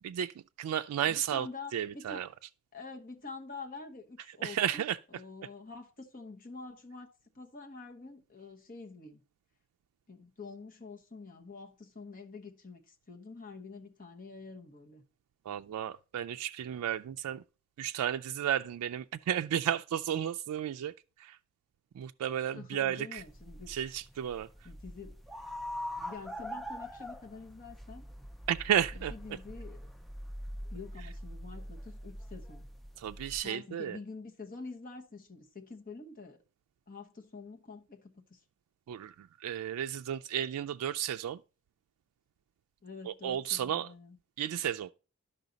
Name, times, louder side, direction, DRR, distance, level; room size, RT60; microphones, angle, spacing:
voice 1, 0.0-2.3 4.3-5.0 15.5-17.4 17.8-21.4 21.9-23.2 23.7-24.5 28.5-29.1 33.0-34.0 38.9-41.4 43.0-43.9 44.4-44.9, right 10 dB, 85° right, 0.3 m, -33 dB
voice 2, 1.1-2.2 2.7-4.9 5.1-9.2 10.1-15.0 22.5-23.7 24.6-25.2 26.0-28.0 29.1-29.9 30.7-32.7 33.4-36.4 36.9-38.4 42.8-44.2, left 4 dB, 40° left, 1.1 m, -47 dB
sound 1, 23.2-33.4, equal, ahead, 0.4 m, -43 dB
11.5 x 5.6 x 3.9 m
head